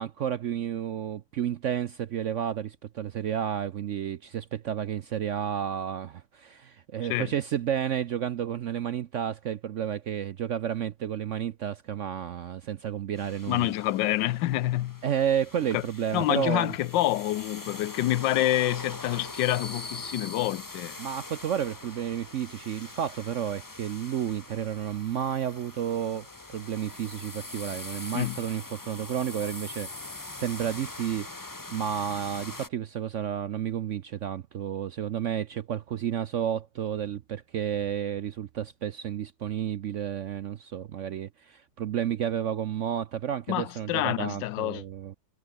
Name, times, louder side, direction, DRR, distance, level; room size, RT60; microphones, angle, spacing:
voice 1, 0.0-13.7 15.0-16.7 21.0-26.3 26.5-31.3 31.7-45.1, right 9 dB, 65° right, 0.7 m, -31 dB
sound 1, 13.2-32.7, left 2 dB, 15° left, 0.8 m, -43 dB
voice 2, 13.5-15.0 15.7-15.8 16.1-21.0 28.1-28.4 43.5-44.8, left 15 dB, 90° left, 1.4 m, -27 dB
omnidirectional pair, 1.9 m